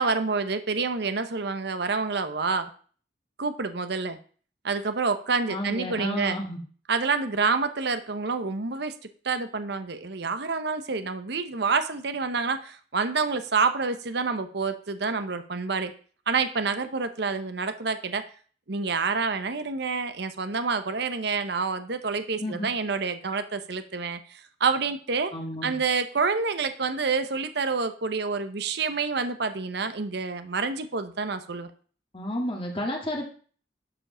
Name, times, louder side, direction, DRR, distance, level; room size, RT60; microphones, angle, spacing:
voice 1, 0.0-2.7 3.4-4.2 4.6-6.4 6.9-8.9 9.2-15.9 16.3-18.2 18.7-25.3 25.6-31.7, right 4 dB, 65° right, 10 dB, 0.9 m, -28 dB
voice 2, 5.5-6.6 22.4-22.7 25.3-25.8 32.1-33.2, left 1 dB, 30° left, 1 dB, 2.0 m, -31 dB
11.5 x 5.2 x 6.2 m, 0.43 s
head